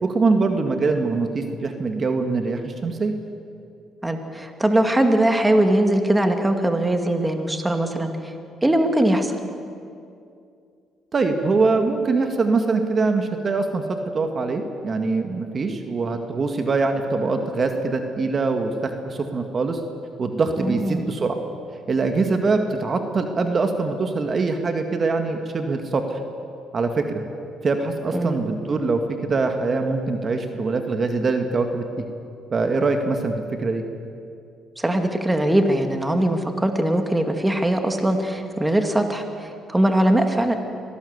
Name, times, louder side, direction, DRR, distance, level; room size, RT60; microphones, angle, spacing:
voice 1, 0.0-3.1 11.1-13.8 14.1-19.8 20.2-21.4 21.9-26.2 26.7-27.2 27.6-32.1 32.5-33.8, right 3 dB, 40° right, 5 dB, 2.0 m, -23 dB
voice 2, 4.0-8.3 8.6-9.4 20.6-21.0 28.1-28.4 34.8-40.5, right 1 dB, 10° right, 5 dB, 2.3 m, -21 dB
24.0 x 17.5 x 8.2 m, 2.5 s
cardioid pair, 90°, 0 cm